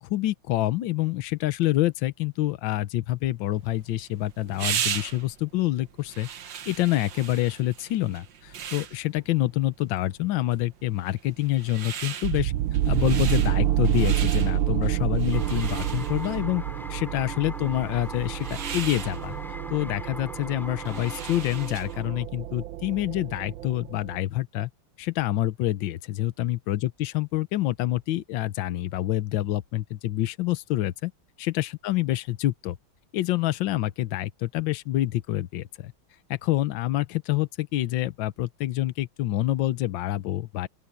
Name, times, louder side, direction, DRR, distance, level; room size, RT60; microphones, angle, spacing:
voice 1, 0.0-6.3 6.7-12.5 12.9-16.6 16.9-19.3 19.7-24.7 25.0-31.1 31.4-32.8 33.1-35.9 36.3-40.7, left 15 dB, 75° left, 1.5 m, -27 dB
sound 1, 3.5-22.1, right 8 dB, 70° right, 1.8 m, -38 dB
sound 2, 12.2-24.2, right 13 dB, 85° right, 1.4 m, -28 dB
sound 3, 15.3-22.2, equal, ahead, 2.6 m, -41 dB
open air
omnidirectional pair, 2.1 m